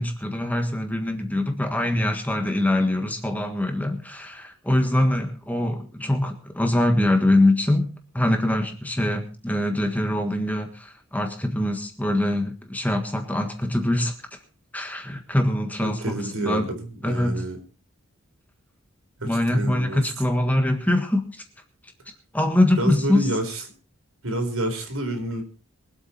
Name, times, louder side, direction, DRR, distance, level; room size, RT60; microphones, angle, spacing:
voice 1, 0.0-14.1 14.7-16.7 17.0-17.4 19.2-21.4 22.3-23.3, left 1 dB, 5° left, 5 dB, 1.6 m, -23 dB
voice 2, 15.8-17.6 19.2-20.0 22.8-23.6 24.2-25.4, right 1 dB, 75° right, 5 dB, 4.0 m, -29 dB
23.0 x 8.5 x 4.3 m, 0.35 s
head